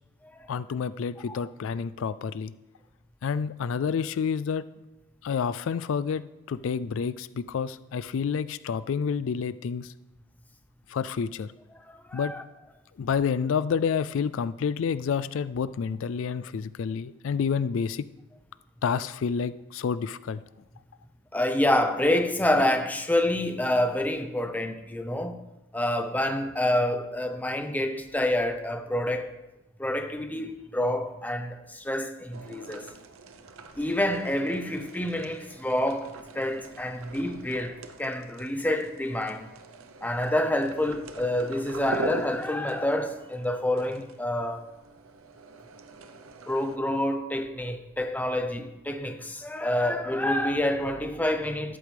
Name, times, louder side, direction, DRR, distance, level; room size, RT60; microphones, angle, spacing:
voice 1, 0.5-2.5 3.2-4.6 5.2-6.2 6.5-9.9 10.9-11.5 12.1-12.3 13.0-18.0 18.8-20.4, left 6 dB, 70° left, 0.3 m, -29 dB
voice 2, 12.1-12.4 21.3-25.4 25.7-29.3 29.8-32.9 33.8-39.5 40.0-44.6 46.5-51.8, left 1 dB, 10° left, 0.8 m, -27 dB
sound 1, 32.3-46.8, right 2 dB, 85° right, 0.8 m, -42 dB
13.0 x 11.0 x 3.4 m
head